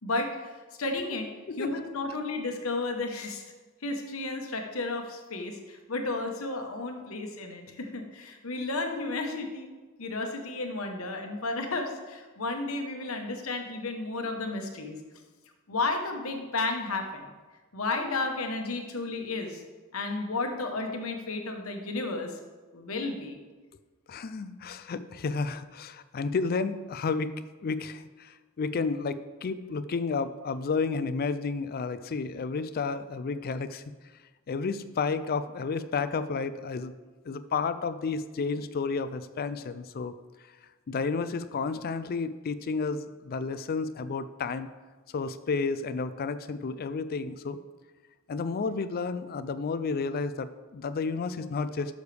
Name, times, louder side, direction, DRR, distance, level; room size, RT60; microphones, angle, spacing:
voice 1, 0.0-0.5 0.8-1.3 1.6-3.5 3.8-9.7 10.0-15.0 15.7-17.3 17.7-19.6 19.9-22.3 22.7-23.4, left 3 dB, 70° left, 4 dB, 1.1 m, -32 dB
voice 2, 24.1-27.3 27.6-33.8 34.5-36.9 37.2-40.1 40.9-44.7 45.1-47.6 48.3-51.9, left 4 dB, 45° left, 13 dB, 0.4 m, -31 dB
11.5 x 6.5 x 3.4 m, 1.3 s
head